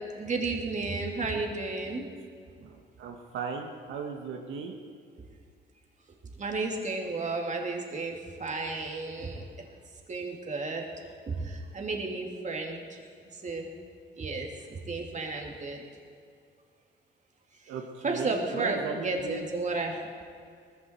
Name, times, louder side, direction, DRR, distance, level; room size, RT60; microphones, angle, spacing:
voice 1, 0.2-2.1 6.4-9.4 10.1-10.9 11.3-13.0 13.3-13.7 14.2-15.9 18.0-20.0, right 3 dB, 40° right, 1 dB, 2.7 m, -33 dB
voice 2, 2.6-4.8 17.7-19.4, right 5 dB, 80° right, 2 dB, 1.5 m, -37 dB
19.0 x 15.0 x 4.6 m, 2.3 s
cardioid pair, 90°, 20 cm